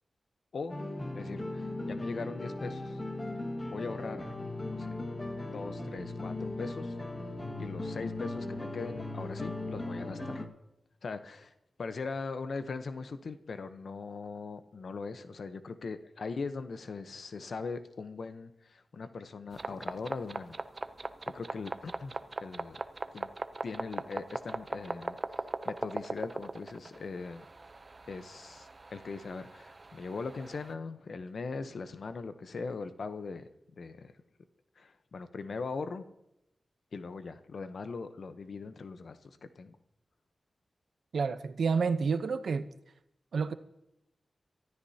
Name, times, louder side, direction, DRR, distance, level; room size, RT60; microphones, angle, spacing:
sound 1, 0.7-10.5, left 2 dB, 20° left, 1.6 m, -38 dB
voice 1, 1.1-3.0 3.6-4.4 4.7-5.0 5.5-7.0 7.6-10.5 11.0-11.5 11.8-20.6 21.0-21.1 21.3-22.8 23.1-23.3 23.6-27.4 28.1-33.5 33.8-34.1 34.8-36.1 36.9-39.8, left 4 dB, 70° left, 0.8 m, -40 dB
sound 2, 19.5-30.7, right 3 dB, 35° right, 0.6 m, -40 dB
voice 2, 41.1-42.7 43.3-43.5, right 5 dB, 85° right, 0.7 m, -29 dB
24.5 x 13.0 x 2.8 m
wide cardioid pair, 130°, 0 cm